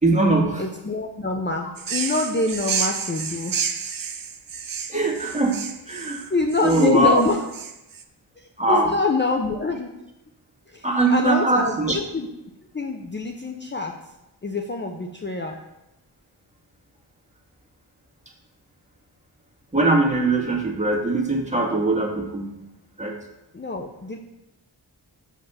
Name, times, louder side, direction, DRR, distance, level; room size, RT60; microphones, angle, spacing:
voice 1, 0.0-0.6 4.9-5.6 5.9-6.3 6.6-7.2 8.6-8.9 10.8-12.0 19.7-22.6 23.0-23.2, right 2 dB, 15° right, 0 dB, 2.0 m, -21 dB
voice 2, 0.6-3.6 6.3-7.5 8.4-9.9 10.7-12.3 12.7-14.0 14.4-15.6 23.5-24.2, left 3 dB, 25° left, 3 dB, 0.7 m, -25 dB
sound 1, 1.8-8.0, right 6 dB, 50° right, 0.8 m, -30 dB
6.3 x 5.7 x 5.7 m, 0.90 s
cardioid pair, 55°, 42 cm